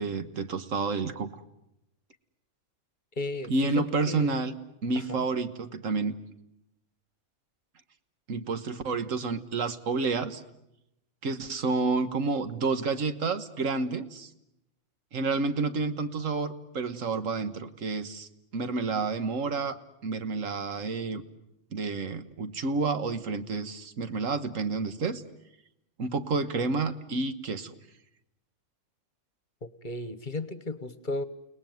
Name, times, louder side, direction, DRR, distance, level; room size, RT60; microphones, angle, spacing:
voice 1, 0.0-1.4 3.5-4.5 4.8-6.2 8.3-10.4 11.2-14.3 15.1-19.8 20.0-21.2 21.7-25.2 26.0-27.7, right 4 dB, 80° right, 10 dB, 1.7 m, -30 dB
voice 2, 3.2-4.4 4.9-5.2 29.6-31.2, left 2 dB, 40° left, 14 dB, 1.2 m, -35 dB
30.0 x 18.5 x 9.3 m, 0.87 s
omnidirectional pair, 1.4 m